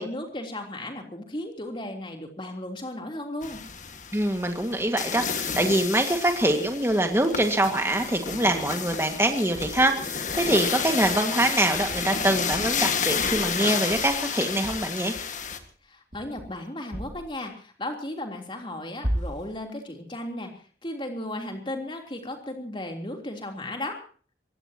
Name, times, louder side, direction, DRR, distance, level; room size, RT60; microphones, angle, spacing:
voice 1, 0.0-3.6 15.8-20.5 20.8-24.0, left 1 dB, 30° left, 3 dB, 3.4 m, -35 dB
sound 1, 3.4-15.6, left 6 dB, 45° left, 1.8 m, -31 dB
voice 2, 4.1-15.2, right 1 dB, 15° right, 5 dB, 1.9 m, -24 dB
sound 2, 9.5-9.9 10.3-10.6 11.0-11.3 11.7-12.2 12.5-12.8 13.2-13.6 13.9-14.3 14.6-14.9 15.4-15.8 16.1-16.6 16.9-17.3 19.0-19.6, equal, 40° right, 2.5 m, -35 dB
24.5 x 18.5 x 2.9 m, 0.42 s
head